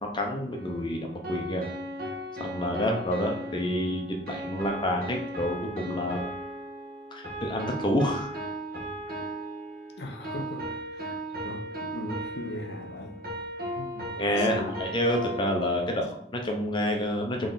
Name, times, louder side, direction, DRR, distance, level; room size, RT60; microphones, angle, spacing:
voice 1, 0.0-1.7 2.4-6.3 7.1-8.3 14.2-17.5, left 1 dB, 25° left, 2 dB, 0.7 m, -28 dB
sound 1, 0.5-16.0, equal, 55° right, 1.2 m, -37 dB
voice 2, 10.0-10.7 11.0-13.2 13.8-14.1 14.4-14.8, left 1 dB, 65° left, 4 dB, 0.7 m, -38 dB
3.8 x 3.3 x 4.0 m, 0.68 s
head